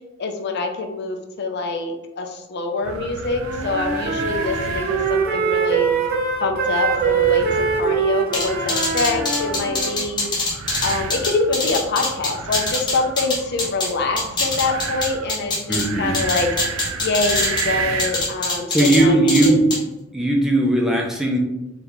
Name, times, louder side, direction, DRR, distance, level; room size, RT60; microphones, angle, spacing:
voice 1, 0.2-5.9 6.4-10.3 10.8-16.5 17.0-19.6, left 3 dB, 50° left, 4 dB, 0.5 m, -25 dB
sound 1, 2.8-18.3, right 5 dB, 80° right, 0.4 m, -32 dB
Wind instrument woodwind instrument, 3.3-10.0, right 6 dB, 45° right, 0.7 m, -23 dB
sound 2, 8.3-13.9 14.2-15.8 16.1-17.7 18.0-19.0 19.3-19.8, left 2 dB, 20° left, 0.9 m, -23 dB
voice 2, 15.7-16.1 18.7-19.8 20.1-21.4, right 1 dB, ahead, -1 dB, 0.5 m, -18 dB
4.0 x 3.3 x 3.0 m, 0.98 s
head